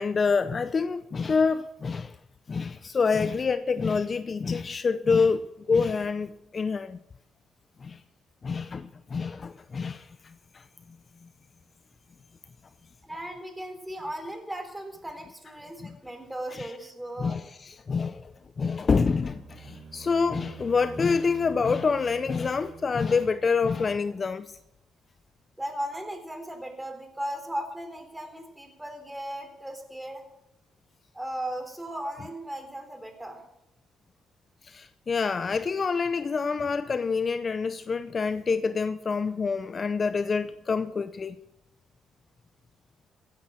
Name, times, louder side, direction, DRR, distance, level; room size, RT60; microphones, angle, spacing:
voice 1, 0.0-2.2 2.5-7.0 7.8-8.0 8.4-10.6 15.8-16.0 16.5-16.7 17.2-24.6 34.6-41.4, left 5 dB, 40° left, 0.6 m, -27 dB
voice 2, 13.0-17.4 25.6-30.2 31.1-33.4, right 1 dB, 10° right, 3.7 m, -37 dB
sound 1, 18.3-24.1, right 6 dB, 45° right, 3.7 m, -47 dB
16.0 x 9.8 x 6.3 m
cardioid pair, 90°, 0 cm